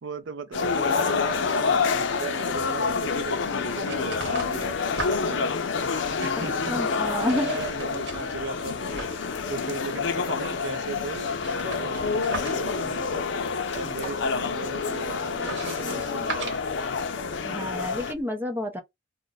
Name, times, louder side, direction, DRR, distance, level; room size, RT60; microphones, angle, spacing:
voice 1, 0.0-4.8 5.0-5.5 6.2-13.3 13.7-16.6, right 4 dB, 85° right, 0.5 m, -37 dB
sound 1, 0.5-18.1, left 5 dB, 80° left, 0.5 m, -28 dB
sound 2, 3.1-18.2, right 3 dB, 70° right, 0.9 m, -42 dB
voice 2, 6.4-7.5 17.4-18.8, left 1 dB, 10° right, 0.5 m, -30 dB
sound 3, 13.5-14.4, left 1 dB, 35° left, 0.8 m, -44 dB
2.4 x 2.1 x 3.9 m
head